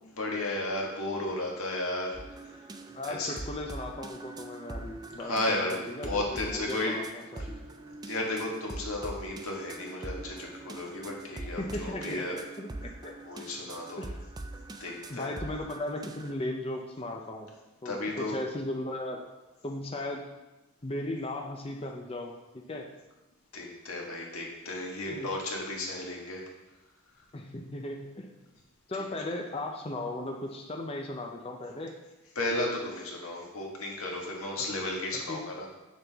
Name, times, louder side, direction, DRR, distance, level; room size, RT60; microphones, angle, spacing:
voice 1, 0.2-2.2 3.0-3.4 5.2-5.8 6.0-6.9 8.0-12.4 13.2-14.0 14.8-15.3 17.8-18.3 23.5-26.4 32.4-35.7, left 2 dB, 90° left, -1 dB, 1.7 m, -33 dB
sound 1, 2.1-16.3, right 2 dB, 20° right, 0.4 m, -43 dB
voice 2, 2.9-7.6 11.6-13.1 14.0-14.1 15.1-17.5 17.8-19.2 19.6-20.2 20.8-22.9 25.1-25.3 27.3-28.3 28.9-31.9 35.1-35.4, left 1 dB, 25° left, 1 dB, 0.6 m, -37 dB
7.6 x 6.8 x 3.5 m, 1.1 s
head